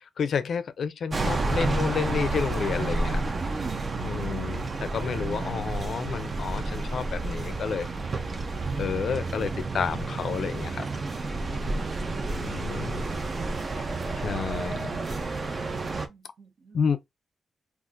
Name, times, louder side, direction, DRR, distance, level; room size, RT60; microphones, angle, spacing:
voice 1, 0.2-3.2 4.0-7.9 8.8-10.8 12.3-13.0 14.2-14.8 16.7-17.0, left 6 dB, 65° left, 0.4 m, -30 dB
sound 1, 1.1-16.1, right 3 dB, 35° right, 0.5 m, -30 dB
voice 2, 3.4-4.0 16.1-16.8, right 4 dB, 65° right, 1.1 m, -44 dB
2.4 x 2.4 x 3.7 m
wide cardioid pair, 145°, 0 cm